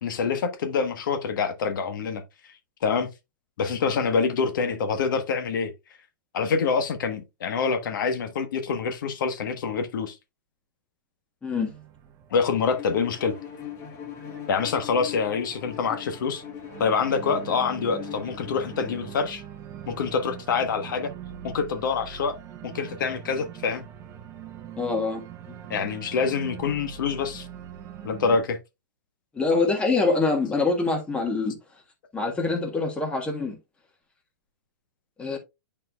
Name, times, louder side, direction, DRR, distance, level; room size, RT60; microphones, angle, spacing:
voice 1, 0.0-2.2 2.8-3.1 3.6-5.7 6.3-10.2 12.3-13.3 14.5-16.4 16.8-19.4 19.9-21.1 21.4-22.4 22.6-23.8 25.7-27.5 28.0-28.6, left 5 dB, 70° left, 1.2 m, -26 dB
Organ, 11.5-28.4, right 9 dB, 25° right, 0.8 m, -43 dB
Bowed string instrument, 12.6-19.2, left 8 dB, 25° left, 1.1 m, -41 dB
voice 2, 24.8-25.2 25.5-25.6 29.3-31.5 32.1-33.6 35.2-35.4, left 3 dB, 10° left, 1.4 m, -25 dB
9.7 x 4.4 x 2.3 m
hypercardioid pair, 150°, 11 cm